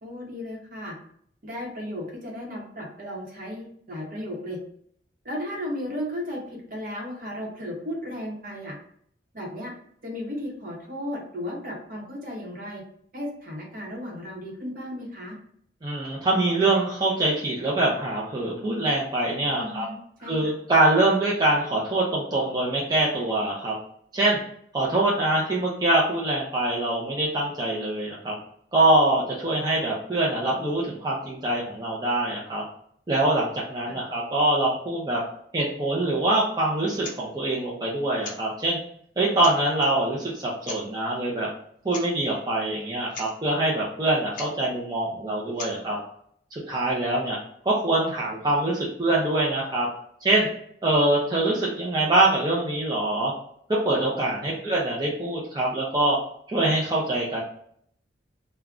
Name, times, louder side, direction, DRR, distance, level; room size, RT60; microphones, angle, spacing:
voice 1, 0.0-1.0 1.4-4.6 5.2-8.8 9.3-9.7 10.0-12.8 13.1-15.4 19.5-20.5 33.9-34.0 54.5-54.6, left 1 dB, 50° right, -1 dB, 0.9 m, -35 dB
voice 2, 15.8-19.9 20.3-23.7 24.1-24.4 24.7-28.3 28.7-32.6 33.1-35.2 35.5-38.8 39.2-41.5 41.8-46.0 46.7-47.4 47.6-49.9 50.2-50.5 50.8-53.3 53.8-56.2 56.5-57.4, right 2 dB, 25° right, -5 dB, 0.5 m, -24 dB
sound 1, 37.0-37.2 38.2-38.4 39.0-39.1 39.4-39.9 40.6-40.8 41.9-42.1 42.3-42.4 42.8-42.9 43.1-43.3 44.3-44.5 45.6-45.8, left 3 dB, 50° left, 0.6 m, -38 dB
2.3 x 2.1 x 3.6 m, 0.65 s
head